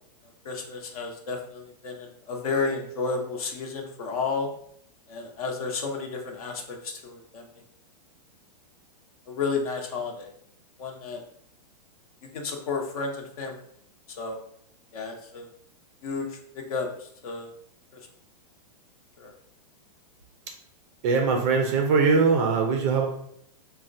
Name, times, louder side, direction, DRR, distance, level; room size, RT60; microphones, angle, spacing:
voice 1, 0.4-4.5 5.1-7.4 9.3-10.3 10.8-11.2 12.3-13.6 14.2-14.4 14.9-15.5 16.0-17.5 19.2-19.3, left 4 dB, 65° left, 3 dB, 0.7 m, -32 dB
voice 2, 21.0-23.1, right 4 dB, 25° right, 3 dB, 0.3 m, -21 dB
4.1 x 2.1 x 2.5 m, 0.69 s
hypercardioid pair, 160°, 21 cm